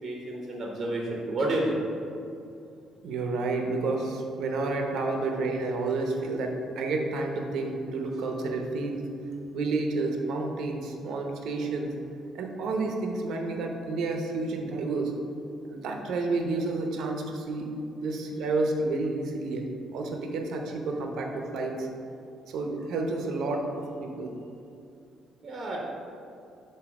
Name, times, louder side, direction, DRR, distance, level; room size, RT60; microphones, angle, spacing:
voice 1, 0.0-1.8 25.4-25.8, right 1 dB, 30° right, -2 dB, 0.8 m, -30 dB
voice 2, 3.0-9.0 9.5-11.9 12.3-15.1 15.7-17.7 18.0-21.9 22.5-24.3, right 3 dB, 65° right, 2 dB, 0.7 m, -30 dB
7.8 x 2.7 x 5.9 m, 2.6 s
cardioid pair, 160°, 0 cm